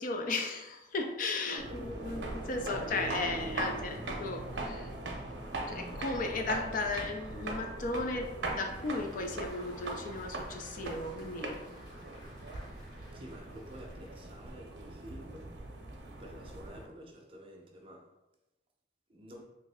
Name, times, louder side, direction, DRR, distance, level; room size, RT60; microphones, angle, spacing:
voice 1, 0.0-4.9 5.7-11.6, left 3 dB, 50° left, 4 dB, 0.4 m, -35 dB
voice 2, 1.4-2.2 13.1-15.5 16.2-18.1 19.1-19.5, equal, 30° right, 0 dB, 0.6 m, -49 dB
sound 1, 1.6-16.9, right 2 dB, 75° right, 0.6 m, -40 dB
Applause, 8.2-14.5, equal, 85° left, 1.3 m, -56 dB
3.1 x 2.4 x 3.5 m, 0.97 s
head